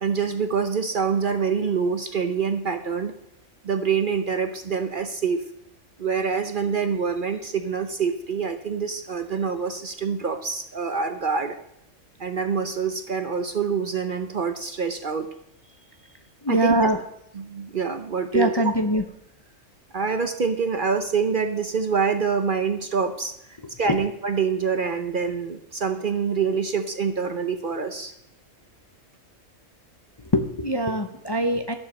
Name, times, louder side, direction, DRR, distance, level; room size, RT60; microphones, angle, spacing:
voice 1, 0.0-3.1 3.6-5.4 6.0-11.5 12.2-15.3 16.5-16.9 17.3-18.6 19.9-23.3 23.8-28.1, right 6 dB, 45° right, 7 dB, 0.8 m, -26 dB
voice 2, 16.4-17.0 18.3-19.0 30.3-31.7, equal, 25° left, 5 dB, 0.7 m, -22 dB
13.0 x 7.2 x 6.4 m, 0.78 s
omnidirectional pair, 1.4 m